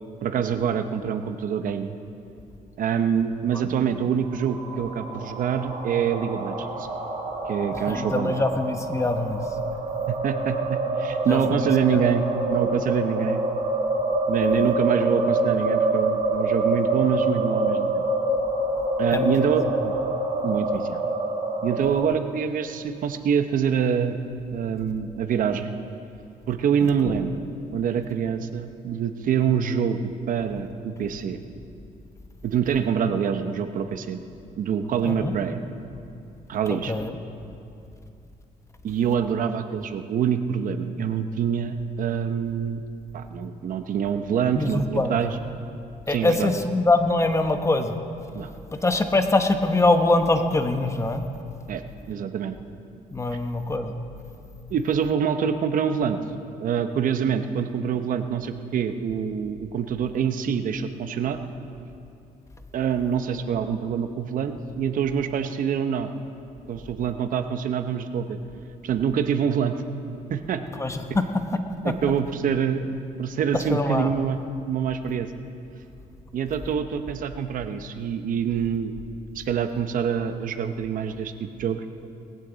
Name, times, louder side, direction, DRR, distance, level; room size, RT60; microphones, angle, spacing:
voice 1, 0.2-2.0 2.8-6.9 7.5-8.4 10.1-13.4 14.3-18.0 19.0-19.7 20.4-21.0 21.6-24.2 24.5-25.7 26.5-27.4 27.7-31.4 32.4-34.2 34.6-35.6 36.5-36.9 38.8-42.8 43.1-45.4 46.1-46.5 48.3-48.5 51.7-52.5 54.7-56.2 56.6-61.4 62.7-66.1 66.7-68.4 68.8-69.8 70.3-70.6 71.8-74.4 74.7-75.3 76.3-78.9 79.3-81.8, right 7 dB, 65° right, 8 dB, 0.9 m, -25 dB
sound 1, 4.2-22.0, right 2 dB, 45° right, 4.5 m, -26 dB
voice 2, 7.7-9.4 11.2-11.7 19.1-19.5 27.0-27.2 35.0-35.3 36.9-37.1 44.5-45.4 46.1-48.0 48.8-51.2 53.1-53.9 70.7-71.2 71.8-71.9 73.7-74.1, left 2 dB, 20° left, 7 dB, 1.0 m, -23 dB
20.0 x 15.0 x 4.0 m, 2.6 s
cardioid pair, 105°, 15 cm